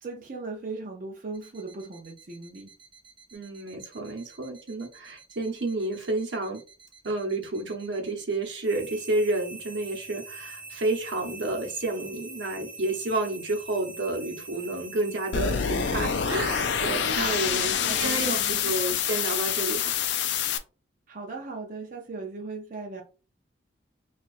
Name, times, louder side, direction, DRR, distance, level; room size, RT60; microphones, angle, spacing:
voice 1, 0.0-2.7 17.4-18.6 21.1-23.0, right 3 dB, 45° right, 0.5 m, -38 dB
sound 1, 1.3-17.7, right 3 dB, 25° right, 1.0 m, -44 dB
voice 2, 3.3-6.6 7.0-20.0, right 2 dB, 75° right, 0.9 m, -30 dB
sound 2, 15.3-20.6, left 8 dB, 70° left, 0.4 m, -27 dB
4.3 x 2.4 x 2.5 m
head